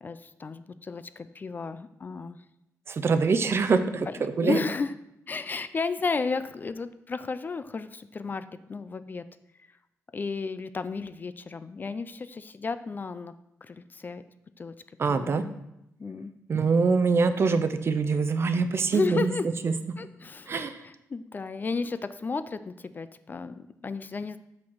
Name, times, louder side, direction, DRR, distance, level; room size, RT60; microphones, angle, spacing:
voice 1, 0.0-2.4 4.1-5.0 5.3-9.2 10.1-13.3 13.6-14.2 14.6-14.7 15.1-15.6 16.0-16.3 18.9-19.4 20.0-24.4, left 4 dB, 35° left, 12 dB, 0.3 m, -33 dB
voice 2, 2.9-4.1 4.4-4.6 15.0-15.4 16.5-19.3 19.6-19.7 20.5-20.8, right 4 dB, 45° right, 9 dB, 0.5 m, -24 dB
6.3 x 6.0 x 4.6 m, 0.84 s
wide cardioid pair, 120°, 6 cm